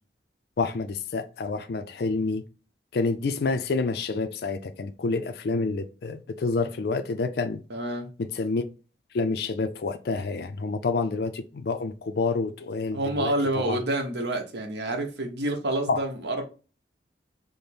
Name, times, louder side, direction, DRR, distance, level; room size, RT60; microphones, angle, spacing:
voice 1, 0.6-2.4 2.9-7.6 8.3-8.6 9.1-13.3 13.7-13.8 15.9-16.0, left 3 dB, 60° left, 0.4 m, -28 dB
voice 2, 7.7-8.1 12.9-16.4, right 1 dB, 70° right, 1.0 m, -28 dB
5.0 x 2.1 x 4.2 m
head